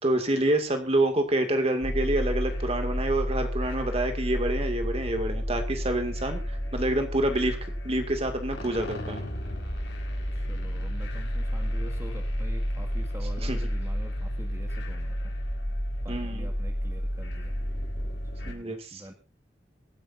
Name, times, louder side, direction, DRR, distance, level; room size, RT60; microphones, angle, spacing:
voice 1, 0.0-7.6 7.8-9.2 13.4-13.6 16.1-16.5 18.5-19.0, right 1 dB, 35° right, 6 dB, 2.2 m, -27 dB
sound 1, 1.8-18.5, equal, 90° left, 5.1 m, -31 dB
voice 2, 10.3-15.3 16.0-17.5 18.4-19.1, equal, 15° right, 4 dB, 2.0 m, -45 dB
24.0 x 10.5 x 2.7 m, 0.27 s
head